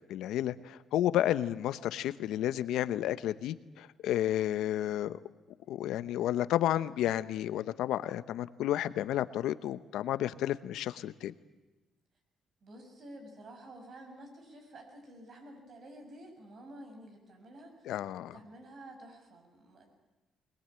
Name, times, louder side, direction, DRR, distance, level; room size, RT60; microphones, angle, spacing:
voice 1, 0.1-5.2 5.7-11.3 17.9-18.3, left 12 dB, 85° left, 13 dB, 0.9 m, -31 dB
voice 2, 12.6-17.9 18.1-20.0, right 1 dB, 55° right, 4 dB, 6.9 m, -51 dB
22.0 x 20.5 x 8.9 m, 1.1 s
cardioid pair, 90°, 0 cm